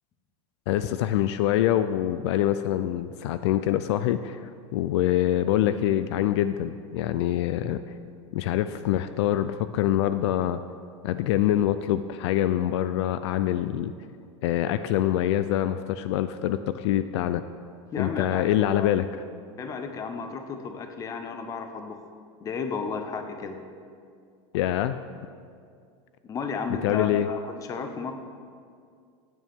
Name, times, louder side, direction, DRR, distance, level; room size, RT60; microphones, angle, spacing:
voice 1, 0.7-4.4 4.7-7.8 8.3-10.6 11.0-13.9 14.4-17.4 18.0-19.1 24.5-25.0 26.8-27.3, left 12 dB, 65° left, 11 dB, 0.4 m, -25 dB
voice 2, 17.9-18.9 19.6-22.0 22.4-23.6 26.3-28.1, left 5 dB, 20° left, 6 dB, 0.9 m, -33 dB
15.5 x 9.4 x 3.6 m, 2.2 s
supercardioid pair, 150°, 15 cm